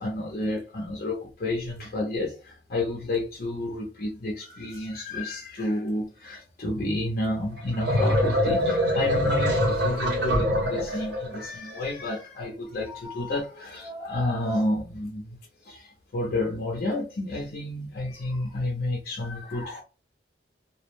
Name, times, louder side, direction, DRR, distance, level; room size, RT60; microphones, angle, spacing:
voice 1, 0.0-15.4 15.6-19.8, left 1 dB, 55° left, 0.5 m, -30 dB
sound 1, 7.6-11.5, equal, 80° right, 1.0 m, -24 dB
2.3 x 2.0 x 3.1 m
head